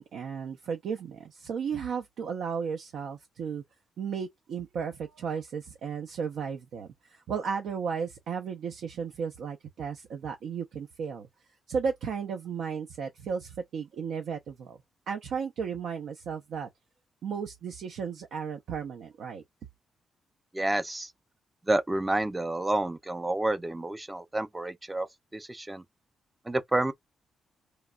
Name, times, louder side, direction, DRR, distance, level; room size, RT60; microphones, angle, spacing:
voice 1, 0.0-3.6 4.0-11.3 11.7-14.8 15.1-16.7 17.2-19.4, right 6 dB, 80° right, 0.5 m, -34 dB
voice 2, 20.5-21.1 21.6-25.1 25.3-25.8 26.5-26.9, right 2 dB, 15° right, 0.4 m, -29 dB
3.0 x 2.1 x 2.3 m
cardioid pair, 100°, 0 cm